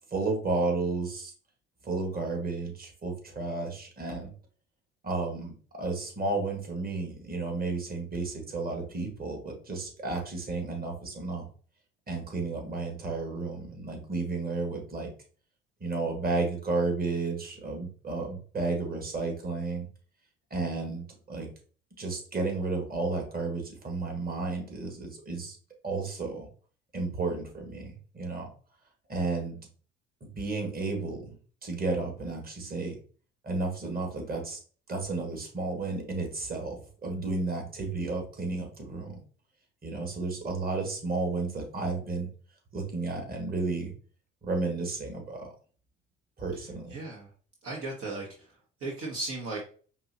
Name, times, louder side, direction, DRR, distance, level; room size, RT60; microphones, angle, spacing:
voice 1, 0.1-1.3 1.8-4.3 5.0-11.4 12.1-15.1 15.8-19.9 20.5-21.5 22.0-25.6 25.8-26.5 26.9-28.5 29.1-29.6 30.2-31.3 31.6-33.0 33.4-34.6 34.9-39.2 39.8-42.3 42.7-43.9 44.4-45.5 46.4-47.0, right 3 dB, 30° right, 2 dB, 1.8 m, -32 dB
voice 2, 46.9-47.3 47.6-48.3 48.8-49.6, right 2 dB, 50° right, -1 dB, 1.2 m, -35 dB
5.3 x 2.9 x 2.8 m, 0.41 s
hypercardioid pair, 55°, 30 cm